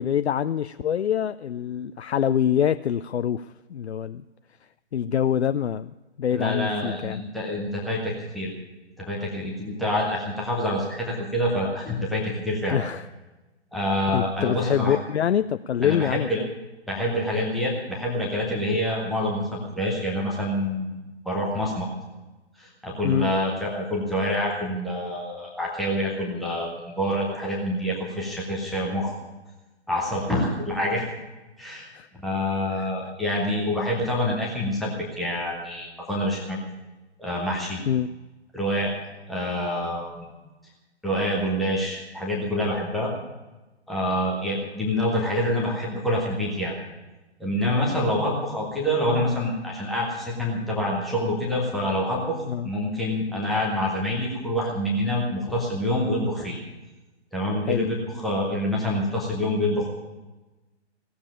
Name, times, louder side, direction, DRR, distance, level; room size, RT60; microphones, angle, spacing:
voice 1, 0.0-4.2 4.9-5.9 6.2-7.2 12.7-13.1 14.1-16.5 23.0-23.3 31.9-32.1 32.7-32.9 37.9-38.1 52.5-52.7 57.7-57.9, left 9 dB, 70° left, 11 dB, 0.5 m, -25 dB
voice 2, 6.3-8.5 9.0-12.8 13.7-15.0 15.8-16.4 16.9-21.0 21.2-21.9 22.6-29.1 29.9-31.1 31.6-31.9 32.2-36.6 37.2-37.8 38.5-38.9 39.3-40.3 41.0-43.1 43.9-46.7 47.4-52.4 52.6-56.6 57.3-60.1, left 1 dB, ahead, -5 dB, 0.4 m, -26 dB
16.5 x 7.1 x 9.9 m, 1.1 s
figure-of-eight pair, 125°, 34 cm